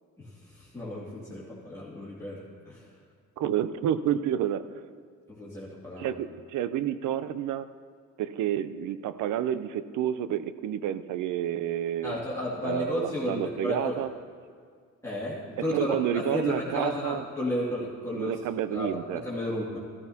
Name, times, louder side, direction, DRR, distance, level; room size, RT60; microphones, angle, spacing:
voice 1, 0.2-2.8 5.3-6.1 12.0-14.0 15.0-18.3 18.7-19.8, left 1 dB, 10° left, -8 dB, 2.4 m, -33 dB
voice 2, 3.4-4.6 6.0-7.7 8.2-12.2 12.6-14.1 15.7-17.2 18.1-19.2, right 10 dB, 80° right, 13 dB, 0.6 m, -29 dB
14.0 x 13.0 x 2.8 m, 2.1 s
cardioid pair, 90°, 30 cm